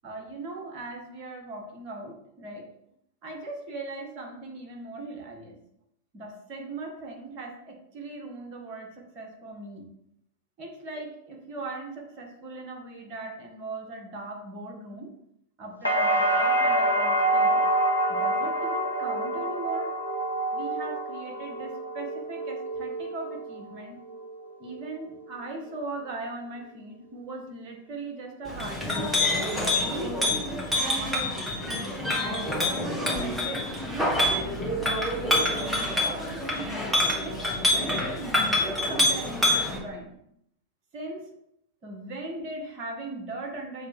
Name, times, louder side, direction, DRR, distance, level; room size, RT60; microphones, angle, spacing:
voice 1, 0.0-2.7 3.2-5.6 6.1-9.9 10.6-15.1 15.6-17.7 18.1-19.9 20.5-24.0 24.6-29.1 29.6-30.7 30.9-31.6 32.1-36.4 37.2-40.2 40.9-41.3 41.8-43.9, right 2 dB, 40° right, 2 dB, 1.7 m, -39 dB
sound 1, 15.8-23.8 24.1-24.8, right 1 dB, 85° left, 0.8 m, -26 dB
Chink clink, 28.4-39.8, left 1 dB, 5° right, 1.7 m, -26 dB
7.2 x 3.2 x 4.5 m, 0.75 s
figure-of-eight pair, 90°, 0 cm